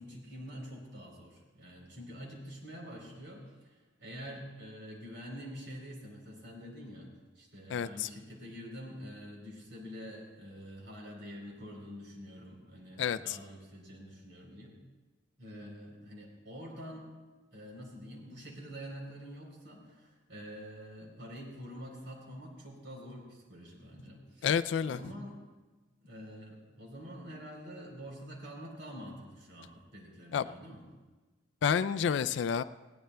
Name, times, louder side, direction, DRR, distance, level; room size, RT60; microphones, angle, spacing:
voice 1, 0.0-14.8 15.4-17.1 17.5-24.5 24.8-25.4 26.0-30.8, equal, 70° right, 0 dB, 3.7 m, -46 dB
voice 2, 7.7-8.1 13.0-13.4 24.4-25.0 30.3-30.5 31.6-32.6, left 7 dB, 75° left, 13 dB, 0.3 m, -29 dB
19.5 x 16.5 x 2.2 m, 1.3 s
head